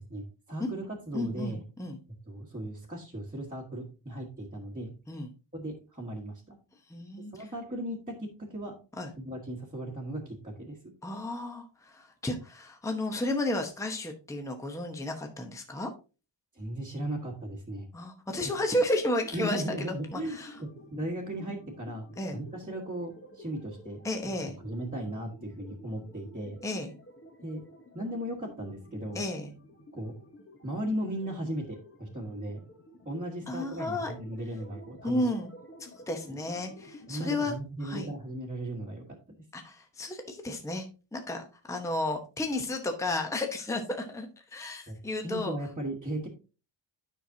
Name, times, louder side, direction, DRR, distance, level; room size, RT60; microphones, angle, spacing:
voice 1, 0.0-1.6 2.3-4.9 5.5-6.6 7.1-8.8 9.2-10.8 16.5-17.9 19.3-24.4 24.6-26.6 27.4-27.6 27.9-29.2 29.9-30.1 30.6-32.6 33.0-35.3 37.1-39.2 44.9-46.3, right 1 dB, 15° right, -4 dB, 1.4 m, -37 dB
voice 2, 1.1-2.0 5.1-5.3 6.9-7.5 9.0-9.1 11.0-15.9 17.9-19.6 20.1-20.6 22.2-22.4 24.0-24.6 26.6-26.9 29.1-29.5 33.5-34.1 35.0-35.5 35.8-37.5 37.8-38.1 39.5-40.9 41.1-45.5, left 1 dB, 5° left, 4 dB, 0.8 m, -33 dB
sound 1, 18.3-37.3, equal, 25° left, 1.2 m, -51 dB
10.0 x 5.9 x 2.7 m, 0.32 s
wide cardioid pair, 150°, 49 cm